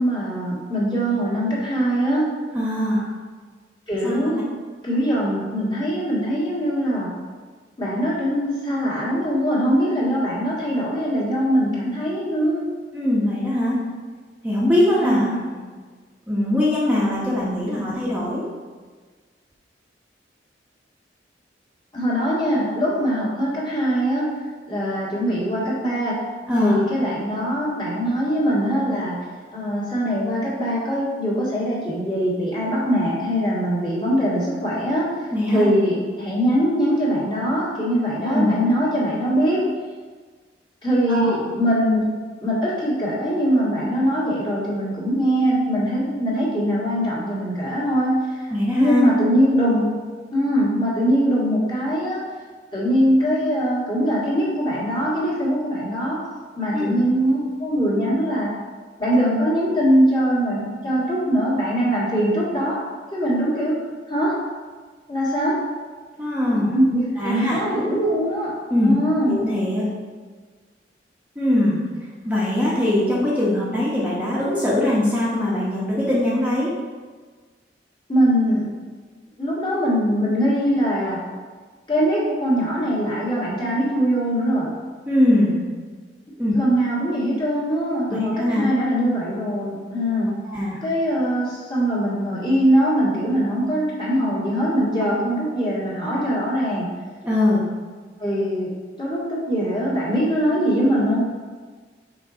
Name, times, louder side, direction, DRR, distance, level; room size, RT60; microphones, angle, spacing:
voice 1, 0.0-2.3 3.9-4.4 4.8-7.1 7.8-12.6 15.0-15.4 21.9-24.3 24.7-26.2 26.6-29.2 29.5-35.1 35.5-39.7 40.8-42.0 42.4-48.4 48.7-50.0 50.3-52.3 52.7-56.2 56.6-58.6 59.0-63.8 64.1-64.5 65.1-65.7 66.5-69.4 78.1-78.7 79.4-81.3 81.9-84.7 86.5-90.4 90.8-96.9 98.2-101.2, equal, 30° left, -7 dB, 1.9 m, -22 dB
voice 2, 2.5-3.1 4.0-4.3 12.9-13.8 14.4-15.6 16.3-18.5 26.5-26.8 35.3-35.7 38.2-38.5 41.1-41.4 48.5-49.1 56.7-57.0 66.2-66.7 67.2-67.6 68.7-68.9 69.3-69.8 71.4-71.8 72.2-76.7 85.1-85.6 86.4-86.5 88.1-88.7 90.4-90.8 97.2-97.6, left 1 dB, 10° right, -7 dB, 1.0 m, -21 dB
6.0 x 3.9 x 5.0 m, 1.4 s
head